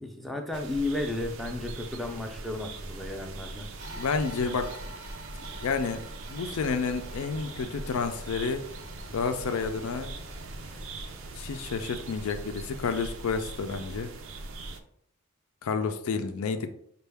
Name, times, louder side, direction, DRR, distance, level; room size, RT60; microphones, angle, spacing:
voice 1, 0.0-3.7, left 2 dB, ahead, 2 dB, 0.4 m, -33 dB
sound 1, 0.5-14.8, right 2 dB, 65° right, 0.5 m, -41 dB
sound 2, 3.7-10.8, right 2 dB, 85° right, 0.9 m, -48 dB
voice 2, 3.9-4.7 5.6-6.0 6.3-8.6 9.1-10.1 11.4-14.1 15.6-16.7, left 5 dB, 80° left, 8 dB, 0.4 m, -30 dB
sound 3, 6.3-13.0, left 1 dB, 25° left, 0.8 m, -51 dB
5.4 x 2.2 x 3.4 m, 0.66 s
head